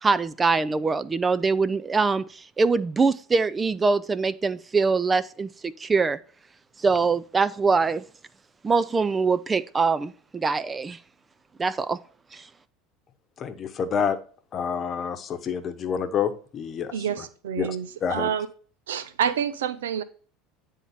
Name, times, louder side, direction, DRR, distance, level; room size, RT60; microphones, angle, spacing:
voice 1, 0.0-6.2 6.8-8.0 8.6-11.0 11.6-12.0 12.3-12.5, right 4 dB, 20° right, 0.5 m, -23 dB
voice 2, 13.4-14.2 14.5-17.2 17.6-17.8 18.0-18.3, left 7 dB, 40° left, 1.1 m, -28 dB
voice 3, 16.9-18.5 18.9-20.0, right 8 dB, 85° right, 0.7 m, -28 dB
9.9 x 3.7 x 5.5 m
hypercardioid pair, 85°, 0 cm